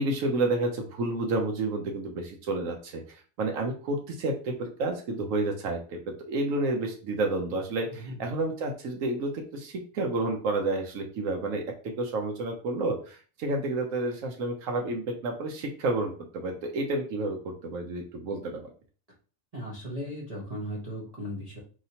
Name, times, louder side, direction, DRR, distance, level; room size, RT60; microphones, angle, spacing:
voice 1, 0.0-3.0 3.4-6.0 6.3-18.6, right 2 dB, 85° right, 2 dB, 1.2 m, -30 dB
voice 2, 19.5-21.6, equal, 30° right, -4 dB, 0.9 m, -37 dB
4.8 x 2.8 x 2.8 m, 0.38 s
omnidirectional pair, 1.4 m